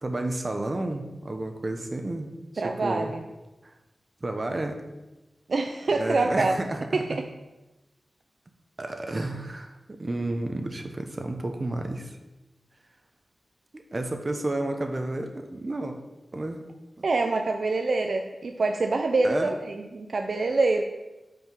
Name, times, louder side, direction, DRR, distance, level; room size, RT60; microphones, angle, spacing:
voice 1, 0.0-2.3 2.5-3.1 3.6-3.7 4.2-4.8 6.0-7.2 8.8-12.2 13.7-16.0 16.3-16.6 17.0-17.1 19.2-19.5, right 2 dB, 35° right, 5 dB, 0.9 m, -31 dB
voice 2, 2.6-3.2 5.5-6.5 6.9-7.2 17.0-20.8, right 3 dB, 65° right, 4 dB, 0.5 m, -25 dB
5.7 x 5.1 x 6.0 m, 1.1 s
wide cardioid pair, 105°, 0 cm